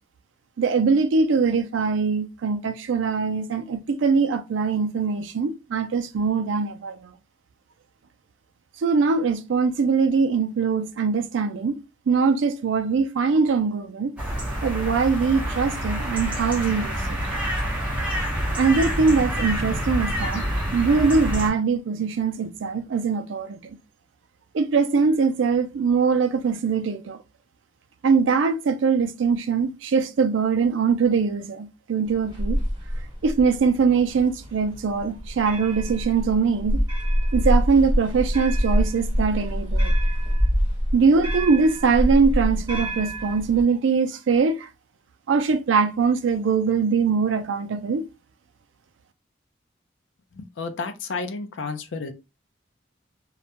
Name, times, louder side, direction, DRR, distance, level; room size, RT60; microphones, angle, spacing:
voice 1, 0.6-7.1 8.8-11.8 12.1-14.2 14.6-17.2 18.6-20.4 20.7-23.6 24.5-27.2 28.0-32.6 33.2-36.8 37.3-39.9 40.9-44.7 45.3-48.0, right 5 dB, 75° right, 0.4 m, -22 dB
sound 1, 14.2-21.5, equal, 5° right, 0.8 m, -27 dB
sound 2, 32.1-43.6, equal, 25° right, 1.2 m, -25 dB
voice 2, 50.3-52.1, left 4 dB, 70° left, 0.5 m, -31 dB
2.3 x 2.1 x 2.8 m
head